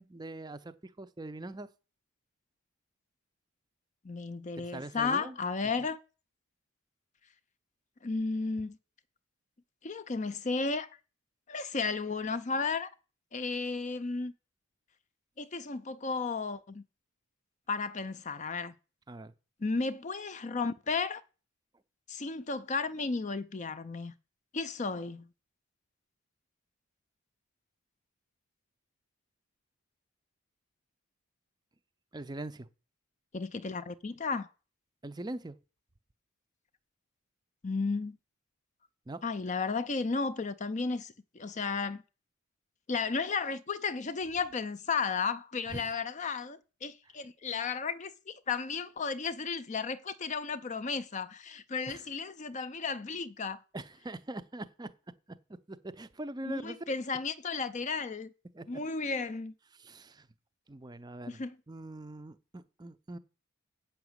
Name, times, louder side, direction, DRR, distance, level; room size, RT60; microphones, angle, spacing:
voice 1, 0.0-1.7 4.6-5.4 19.1-19.3 32.1-32.7 35.0-35.6 39.1-39.2 45.7-45.9 51.9-52.1 53.7-54.9 55.7-57.0 58.5-58.8 59.7-60.3 60.7-63.2, right 2 dB, 20° right, 0.5 m, -42 dB
voice 2, 4.0-6.0 8.0-8.8 9.8-10.9 11.5-12.9 13.3-14.3 15.4-16.8 17.7-18.7 19.6-21.2 22.1-24.1 24.5-25.2 33.3-34.5 37.6-38.2 39.2-42.0 42.9-53.6 56.5-58.3 58.7-59.5 61.3-61.6, left 4 dB, 30° left, 0.5 m, -34 dB
8.1 x 5.8 x 7.9 m
head